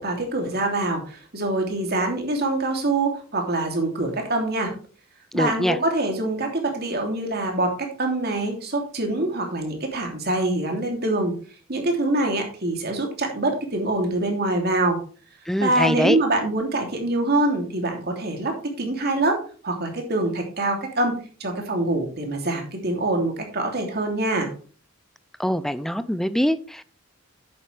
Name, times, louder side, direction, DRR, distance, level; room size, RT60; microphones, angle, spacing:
voice 1, 0.0-4.7 5.3-11.3 11.7-15.0 15.6-19.4 19.6-24.5, right 2 dB, 50° right, 3.0 m, -25 dB
voice 2, 5.3-5.8 15.5-16.2 25.4-26.9, equal, ahead, 0.5 m, -23 dB
10.5 x 8.7 x 3.4 m
head